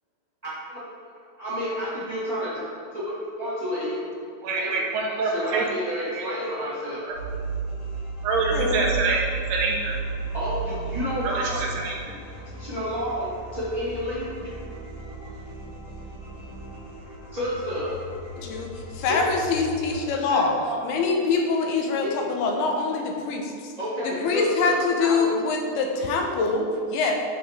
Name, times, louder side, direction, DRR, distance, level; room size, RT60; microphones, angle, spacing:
voice 1, 0.6-0.9 1.4-4.0 4.5-4.7 5.0-7.0 10.3-11.9 12.3-14.5 15.1-15.3 17.3-18.0 19.1-19.2 20.1-20.7 23.8-25.2, equal, 45° right, -11 dB, 0.5 m, -30 dB
voice 2, 4.4-5.6 6.1-6.7 7.1-7.2 8.2-10.0 11.2-12.2, right 3 dB, 75° right, -2 dB, 3.3 m, -26 dB
sound 1, 7.1-20.0, right 4 dB, 30° left, 2.1 m, -34 dB
voice 3, 8.5-8.9 18.4-18.7 18.9-20.6 20.8-23.7 24.0-27.1, left 4 dB, 80° left, 2 dB, 2.8 m, -24 dB
13.0 x 5.9 x 3.6 m, 2.3 s
omnidirectional pair, 4.7 m